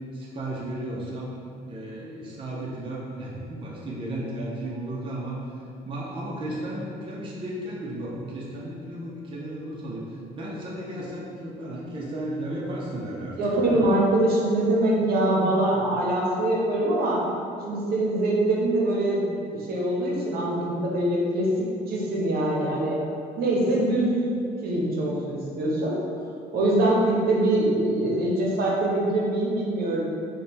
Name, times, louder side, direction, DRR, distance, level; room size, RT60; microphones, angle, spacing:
voice 1, 0.1-1.3 1.7-5.4 5.8-10.1 10.4-13.9, right 1 dB, 30° right, -5 dB, 0.6 m, -34 dB
voice 2, 13.3-17.2 17.7-23.0 23.4-24.1 24.6-26.0 26.5-30.0, right 1 dB, 65° right, -3 dB, 0.8 m, -23 dB
3.2 x 2.2 x 4.2 m, 2.5 s
cardioid pair, 110°, 17 cm